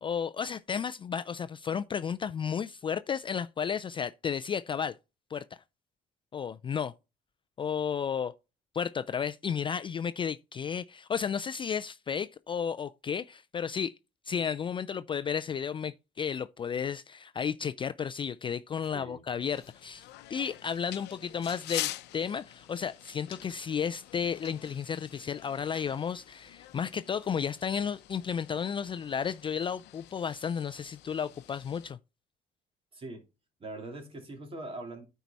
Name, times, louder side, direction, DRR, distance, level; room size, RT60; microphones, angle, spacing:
voice 1, 0.0-4.9 5.3-5.4 6.3-6.9 7.6-8.3 8.7-13.9 14.3-32.0, left 7 dB, 30° left, 0.3 m, -33 dB
voice 2, 18.9-19.2 32.9-33.3 33.6-35.1, right 2 dB, 35° right, 2.7 m, -42 dB
sound 1, 19.4-31.9, left 15 dB, 80° left, 0.7 m, -45 dB
9.2 x 4.7 x 4.1 m
cardioid pair, 110°, 17 cm